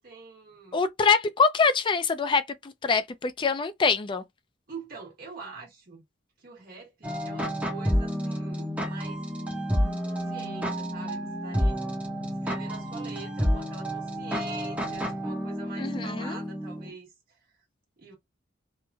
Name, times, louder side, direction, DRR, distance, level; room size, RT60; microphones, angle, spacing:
voice 1, 0.0-0.8 4.7-6.0 6.4-9.2 9.9-11.8 12.4-17.4 18.0-18.1, right 4 dB, 50° right, 1.2 m, -44 dB
voice 2, 0.7-4.2 15.8-16.4, left 5 dB, 25° left, 0.3 m, -24 dB
sound 1, 7.0-16.9, equal, 10° right, 0.7 m, -30 dB
3.0 x 2.1 x 2.3 m
head